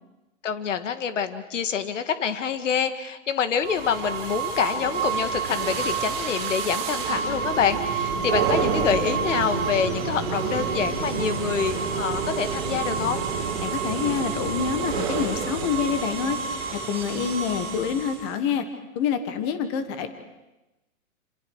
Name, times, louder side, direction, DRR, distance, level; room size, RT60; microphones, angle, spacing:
voice 1, 0.4-13.2, left 7 dB, 60° left, 9 dB, 1.9 m, -26 dB
sound 1, 3.6-18.4, right 6 dB, 45° right, 6.9 m, -28 dB
sound 2, 8.2-13.8, right 4 dB, 15° right, 3.4 m, -45 dB
voice 2, 13.6-16.4 16.7-18.7 18.9-20.1, left 7 dB, 20° left, 9 dB, 1.3 m, -27 dB
28.5 x 27.0 x 4.7 m, 1.0 s
hypercardioid pair, 165°, 42 cm